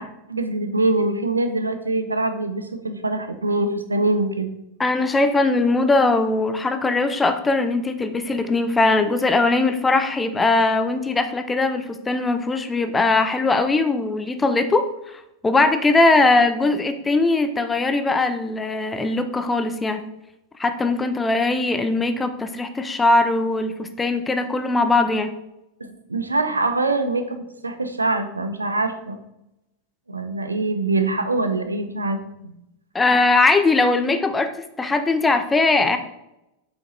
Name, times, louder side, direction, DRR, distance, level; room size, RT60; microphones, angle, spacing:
voice 1, 0.0-4.5 25.8-29.2 30.1-32.5, right 2 dB, 80° right, 8 dB, 0.7 m, -24 dB
voice 2, 4.8-20.0 20.6-25.3 32.9-34.5 34.8-36.0, left 3 dB, 10° left, 8 dB, 0.7 m, -20 dB
7.7 x 5.2 x 4.0 m, 0.87 s
figure-of-eight pair, 90°, 0 cm